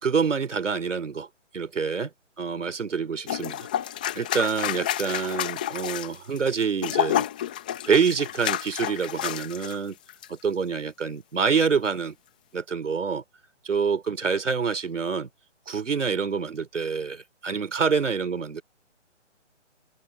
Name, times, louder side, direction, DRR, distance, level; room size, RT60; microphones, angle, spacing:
voice 1, 0.0-1.3 1.5-2.1 2.4-3.7 4.1-7.2 7.9-10.0 10.3-12.1 12.5-13.2 13.6-15.3 15.7-18.6, right 5 dB, 75° right, 3.0 m, -26 dB
sound 1, 3.3-9.8 10.1-10.3, left 11 dB, 5° left, 0.6 m, -30 dB
open air
hypercardioid pair, 155°, 36 cm